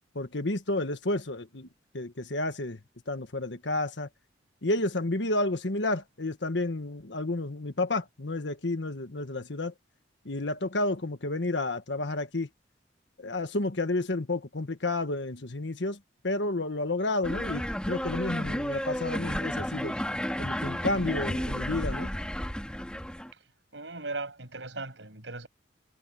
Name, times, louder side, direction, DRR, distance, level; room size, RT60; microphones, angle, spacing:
voice 1, 0.1-1.7 1.9-2.8 3.1-4.1 4.6-9.7 10.2-12.5 13.2-16.0 16.2-20.0 20.4-22.1, left 2 dB, 80° left, 1.4 m, -31 dB
sound 1, 17.2-23.3, equal, 5° left, 4.5 m, -32 dB
voice 2, 23.7-25.5, right 3 dB, 85° right, 7.0 m, -38 dB
head